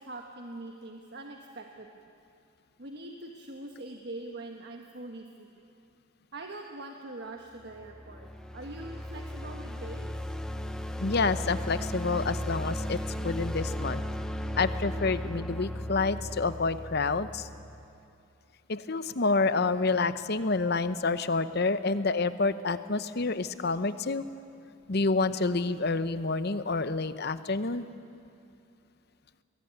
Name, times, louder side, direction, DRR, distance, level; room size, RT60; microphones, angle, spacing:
voice 1, 0.1-1.9 2.8-5.5 6.3-8.3 8.5-10.1, right 2 dB, 50° right, 2 dB, 1.4 m, -43 dB
sound 1, 7.6-17.8, left 1 dB, 5° left, 0.9 m, -36 dB
voice 2, 11.0-14.0 14.6-17.5 18.7-24.2 24.9-27.9, left 3 dB, 50° left, 13 dB, 0.8 m, -28 dB
23.0 x 19.5 x 9.5 m, 2.6 s
head